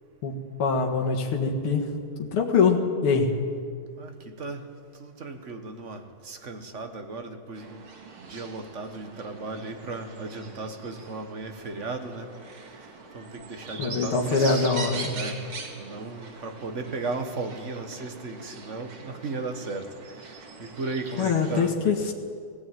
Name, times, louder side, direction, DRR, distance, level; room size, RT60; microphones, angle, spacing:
voice 1, 0.6-1.9 2.2-3.3 13.8-15.1 21.2-22.1, left 4 dB, 75° left, 0 dB, 2.6 m, -23 dB
voice 2, 4.0-4.7 5.0-7.9 8.3-12.3 13.1-14.7 15.1-19.9 20.6-22.1, right 3 dB, 40° right, 6 dB, 1.5 m, -36 dB
sound 1, 7.5-21.6, right 4 dB, 70° right, 3.0 m, -42 dB
17.5 x 16.0 x 9.2 m, 2.2 s
omnidirectional pair, 2.4 m